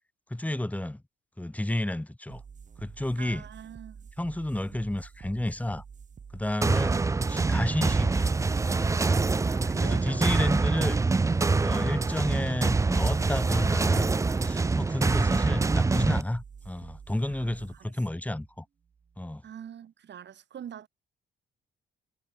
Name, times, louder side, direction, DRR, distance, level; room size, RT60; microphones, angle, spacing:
voice 1, 0.3-1.0 1.4-2.4 2.8-3.4 4.2-5.8 6.3-7.0 7.3-8.3 9.8-11.0 11.6-18.6 19.2-19.4, left 1 dB, 5° left, 2.8 m, -31 dB
sound 1, 2.3-19.3, right 6 dB, 40° right, 1.6 m, -48 dB
voice 2, 3.2-4.1 9.5-11.0 17.3-17.9 19.4-20.9, right 9 dB, 60° right, 6.1 m, -46 dB
sound 2, 6.6-16.2, right 3 dB, 15° right, 0.4 m, -25 dB
cardioid pair, 90°, 20 cm